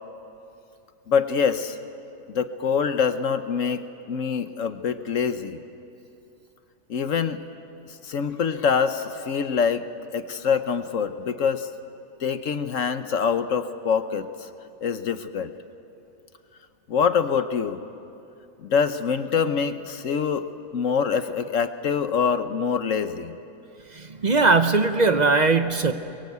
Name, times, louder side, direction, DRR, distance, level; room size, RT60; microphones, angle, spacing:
voice 1, 1.1-1.8 2.3-5.6 6.9-7.4 8.0-9.8 10.1-11.7 12.2-14.3 14.8-15.5 16.9-17.8 18.6-20.5 20.7-23.4, left 6 dB, 55° left, 10 dB, 1.1 m, -25 dB
voice 2, 23.9-25.9, right 3 dB, 50° right, 9 dB, 0.5 m, -20 dB
23.5 x 22.5 x 8.2 m, 2.7 s
omnidirectional pair, 1.7 m